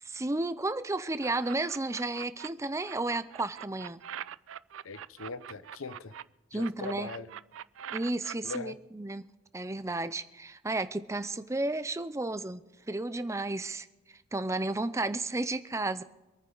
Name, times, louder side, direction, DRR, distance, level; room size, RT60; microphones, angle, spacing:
voice 1, 0.0-4.0 6.5-7.1 7.9-9.3 9.5-13.9 14.3-16.0, right 2 dB, 15° right, 0.5 m, -33 dB
sound 1, 1.2-2.5 2.8-6.2 6.6-8.6, right 9 dB, 70° right, 0.4 m, -43 dB
voice 2, 4.8-6.1 6.5-7.3 8.4-8.8, left 3 dB, 90° left, 0.9 m, -40 dB
26.0 x 9.6 x 4.0 m
head